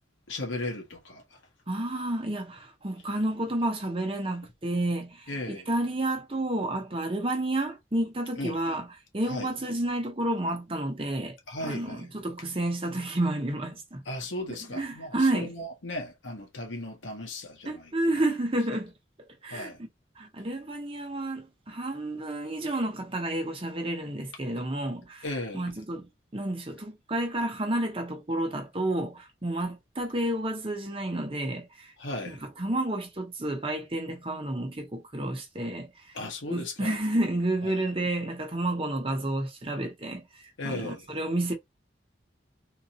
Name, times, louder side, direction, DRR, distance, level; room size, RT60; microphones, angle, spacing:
voice 1, 0.3-1.2 5.3-5.7 8.4-8.6 9.3-9.5 11.5-12.1 14.1-17.9 19.5-19.8 25.2-25.7 32.0-32.4 36.1-36.9 40.6-41.0, left 2 dB, 85° left, 1.5 m, -36 dB
voice 2, 1.7-8.9 9.1-14.0 14.5-15.5 17.6-18.9 19.4-19.7 20.2-25.3 25.5-26.1 26.3-31.9 32.2-35.9 36.5-40.2 40.6-41.5, right 1 dB, 30° right, 0.9 m, -30 dB
3.8 x 2.6 x 2.9 m
head